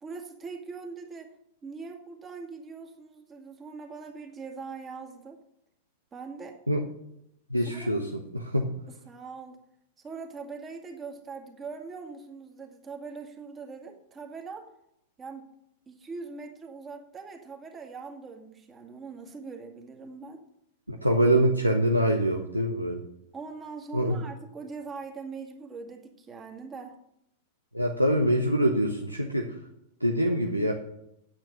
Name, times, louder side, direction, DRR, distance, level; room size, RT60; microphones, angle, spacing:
voice 1, 0.0-1.3 1.6-5.4 6.1-6.6 7.6-7.9 8.9-9.6 10.0-14.7 15.2-15.5 15.9-20.4 23.3-27.0, right 4 dB, 20° right, 3 dB, 2.0 m, -42 dB
voice 2, 7.5-8.1 8.3-8.7 20.9-23.0 23.9-24.2 27.7-29.5 30.0-30.7, equal, 90° right, 2 dB, 1.0 m, -24 dB
8.8 x 8.7 x 6.6 m, 0.79 s
figure-of-eight pair, 95°, 0 cm